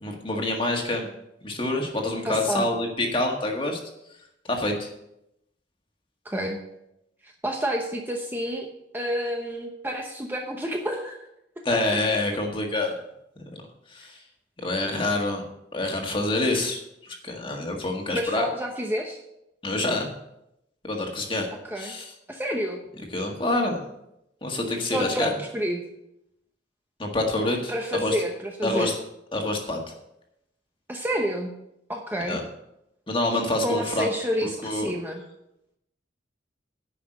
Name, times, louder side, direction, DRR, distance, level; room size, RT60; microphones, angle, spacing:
voice 1, 0.0-1.1 1.4-3.8 4.5-4.9 11.7-13.0 13.5-13.6 13.9-14.2 14.6-15.4 15.7-18.5 19.6-20.1 20.8-21.5 21.8-22.1 23.1-23.8 24.4-25.3 27.0-28.2 28.6-28.9 29.3-29.8 32.3-32.4 33.1-34.1 34.4-34.9, left 2 dB, 25° left, 2 dB, 1.7 m, -26 dB
voice 2, 2.2-2.7 6.2-6.6 7.2-8.7 8.9-11.3 11.7-11.8 18.1-19.2 21.6-22.0 22.3-22.8 24.9-25.8 27.7-28.9 30.9-31.5 31.9-32.4 33.6-35.2, equal, 10° right, 2 dB, 0.9 m, -29 dB
10.0 x 5.8 x 7.9 m, 0.83 s
head